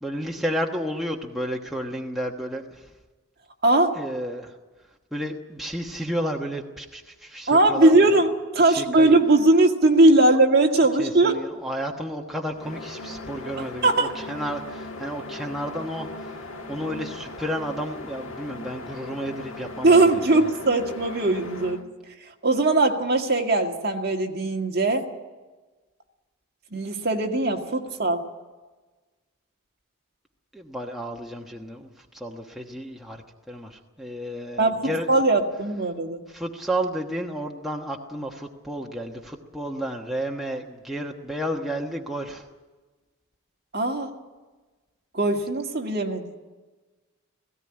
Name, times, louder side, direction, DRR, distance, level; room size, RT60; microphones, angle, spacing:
voice 1, 0.0-2.9 4.0-4.5 5.1-8.0 8.6-9.1 10.2-10.4 11.0-16.3 16.7-20.0 20.3-20.5 30.5-33.2 33.5-35.1 36.3-42.5, equal, ahead, -1 dB, 1.2 m, -32 dB
voice 2, 3.6-3.9 7.5-11.4 13.8-14.1 19.8-21.8 22.4-25.0 26.7-28.2 34.6-36.2 43.7-44.1 45.1-46.3, right 2 dB, 45° right, 2 dB, 1.9 m, -20 dB
sound 1, 12.5-21.8, left 2 dB, 65° left, 1.8 m, -38 dB
17.5 x 16.5 x 9.8 m, 1.3 s
head